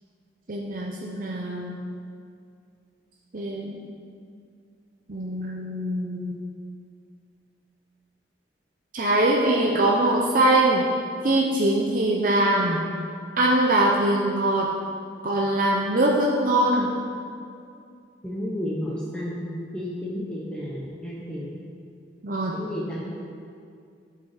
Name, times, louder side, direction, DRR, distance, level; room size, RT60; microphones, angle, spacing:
voice 1, 0.5-1.8 3.3-3.8 5.1-6.4 8.9-10.8 11.2-12.9 13.4-14.7 15.2-16.9 22.2-22.6, right 1 dB, 50° right, -2 dB, 0.7 m, -22 dB
voice 2, 18.2-21.5 22.5-23.0, equal, 5° left, -6 dB, 0.9 m, -32 dB
11.0 x 5.8 x 5.0 m, 2.4 s
head